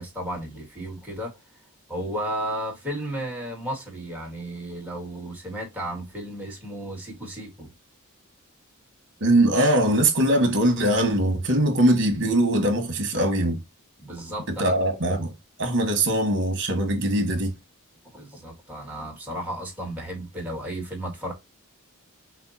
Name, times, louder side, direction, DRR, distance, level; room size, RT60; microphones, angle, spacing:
voice 1, 0.0-1.3 1.9-7.7 14.0-15.2 18.1-21.3, right 1 dB, 10° right, 1.7 m, -34 dB
voice 2, 9.2-13.6 14.6-15.3 15.6-17.5, right 1 dB, 55° right, 1.5 m, -21 dB
5.6 x 2.2 x 4.1 m
head